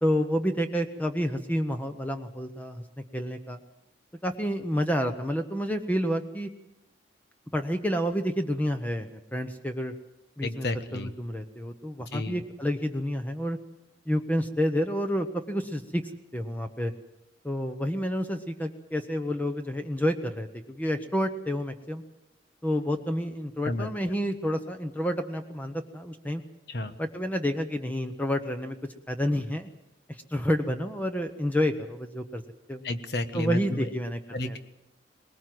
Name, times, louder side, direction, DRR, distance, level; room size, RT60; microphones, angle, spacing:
voice 1, 0.0-2.8 3.1-3.6 4.2-6.5 7.5-9.9 10.4-10.7 10.9-13.6 14.1-16.0 16.3-16.9 17.4-22.0 22.6-26.4 27.0-28.8 29.1-29.7 30.3-32.4 32.7-32.8 33.3-34.6, equal, 10° left, 7 dB, 0.9 m, -29 dB
voice 2, 10.4-11.1 12.1-12.4 23.6-23.9 26.7-27.0 32.8-33.9 34.3-34.6, left 2 dB, 60° left, 10 dB, 1.3 m, -31 dB
20.5 x 19.0 x 7.8 m, 0.86 s
head